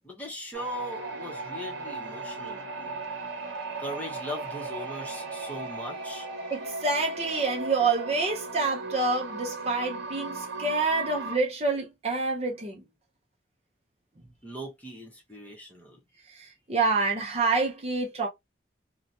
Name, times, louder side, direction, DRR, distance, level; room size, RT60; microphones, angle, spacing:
voice 1, 0.0-3.0 3.8-6.3 14.4-16.0, equal, 10° left, 0.8 m, -39 dB
sound 1, 0.5-11.4, right 3 dB, 80° right, 0.8 m, -37 dB
voice 2, 6.5-12.8 16.3-18.3, right 3 dB, 35° right, 0.6 m, -27 dB
2.7 x 2.2 x 2.6 m
head